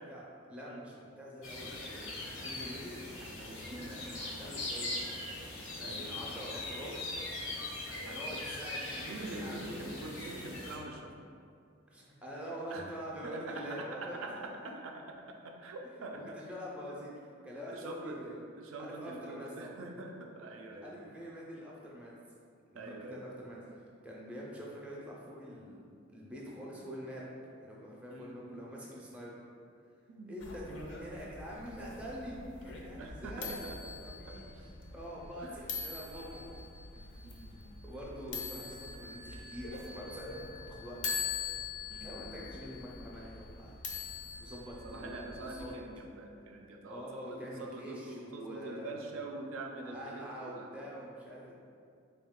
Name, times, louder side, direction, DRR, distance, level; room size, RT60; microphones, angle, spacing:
voice 1, 0.1-2.1 2.4-5.0 5.8-7.0 8.0-10.1 11.9-14.3 16.0-17.1 17.4-18.4 18.8-19.8 20.8-22.2 22.7-23.6 24.0-25.8 26.1-27.3 27.6-29.4 30.3-33.6 34.0-36.5 36.9-37.4 37.8-41.0 42.0-43.8 44.4-45.8 46.9-49.0 49.9-51.5, equal, 5° right, -5 dB, 0.4 m, -45 dB
sound 1, 1.4-10.8, left 2 dB, 80° left, 0.8 m, -41 dB
voice 2, 5.8-6.1 9.0-11.1 12.7-12.9 13.2-16.2 17.7-18.2 18.6-21.0 22.7-23.2 28.1-28.7 30.1-30.4 33.0-33.8 34.3-34.4 35.4-35.6 37.2-37.6 41.9-42.3 44.8-50.7, right 2 dB, 75° right, 2 dB, 0.4 m, -44 dB
sound 2, 30.4-45.7, left 5 dB, 60° left, 0.5 m, -43 dB
3.7 x 2.3 x 3.6 m, 2.4 s
head